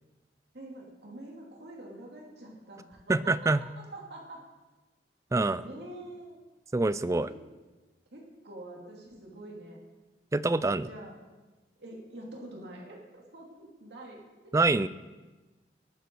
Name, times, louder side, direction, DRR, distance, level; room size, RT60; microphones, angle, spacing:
voice 1, 0.5-4.4 5.6-6.4 7.3-7.4 8.1-9.8 10.8-11.1 11.8-14.5, right 1 dB, 65° right, -1 dB, 2.7 m, -46 dB
voice 2, 3.1-3.6 5.3-5.6 6.7-7.3 10.3-10.9 14.5-14.9, right 3 dB, 15° right, 16 dB, 0.4 m, -25 dB
19.5 x 8.1 x 4.6 m, 1.2 s
head